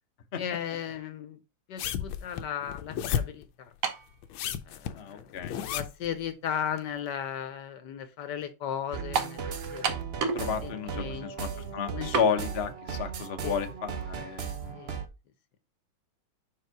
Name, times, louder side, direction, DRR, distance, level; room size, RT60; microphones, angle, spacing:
voice 1, 0.3-1.4 1.7-3.7 4.7-9.9 10.6-12.4 13.4-13.6 14.7-14.9, left 9 dB, 65° left, 1.3 m, -36 dB
sound 1, 1.8-3.4 4.2-6.1 6.8-6.9, left 9 dB, 85° left, 1.4 m, -32 dB
sound 2, 3.8-4.1 5.0-5.1 9.1-9.4 9.8-10.5 10.8-10.9 12.1-12.3, right 5 dB, 55° right, 1.0 m, -29 dB
voice 2, 5.0-5.6 10.3-14.8, left 7 dB, 50° left, 0.8 m, -32 dB
sound 3, 8.9-15.1, right 6 dB, 80° right, 0.5 m, -37 dB
5.3 x 4.7 x 4.6 m
omnidirectional pair, 2.2 m